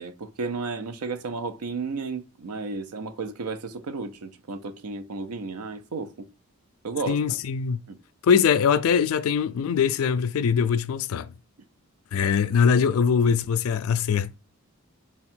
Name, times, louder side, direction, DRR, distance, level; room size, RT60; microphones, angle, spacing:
voice 1, 0.0-6.3 6.8-7.2 7.9-8.0, right 4 dB, 85° right, 0.5 m, -33 dB
voice 2, 7.1-7.8 8.2-11.3 12.1-14.4, left 6 dB, 75° left, 0.3 m, -22 dB
3.6 x 2.2 x 4.2 m
head